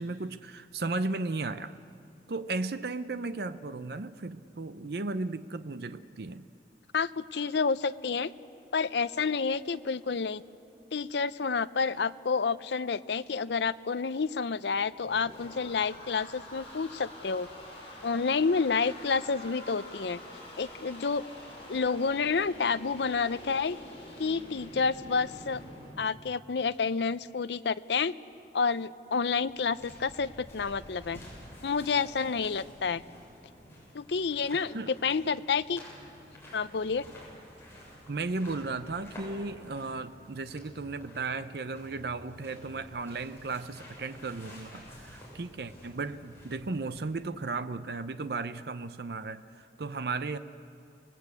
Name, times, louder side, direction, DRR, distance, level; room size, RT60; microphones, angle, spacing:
voice 1, 0.0-1.7 2.3-6.4 34.7-34.9 38.1-50.4, right 3 dB, 60° right, 12 dB, 0.6 m, -35 dB
voice 2, 6.9-8.3 8.7-10.4 10.9-17.5 18.0-20.2 20.6-21.2 21.7-23.8 24.2-25.6 26.0-28.1 28.5-31.2 31.6-33.0 33.9-35.8 36.5-37.0, left 5 dB, 75° left, 14 dB, 0.6 m, -29 dB
sound 1, 14.7-25.9, left 1 dB, 35° left, 7.2 m, -47 dB
sound 2, 29.1-47.3, equal, 15° left, 7.6 m, -51 dB
28.5 x 19.0 x 8.4 m, 2.5 s
head